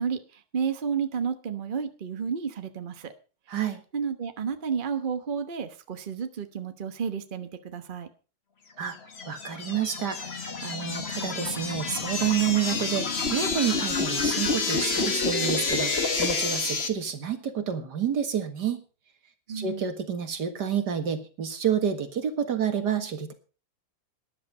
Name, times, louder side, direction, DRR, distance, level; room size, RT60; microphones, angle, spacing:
voice 1, 0.0-3.1 3.9-8.1 19.5-19.8, right 6 dB, 35° right, 8 dB, 1.2 m, -31 dB
voice 2, 3.5-3.8 8.8-9.0 9.3-18.8 19.5-23.3, right 8 dB, 80° right, 7 dB, 2.3 m, -29 dB
sound 1, 8.9-16.9, left 4 dB, 40° left, 1.7 m, -28 dB
13.0 x 10.5 x 5.5 m, 0.36 s
omnidirectional pair, 1.8 m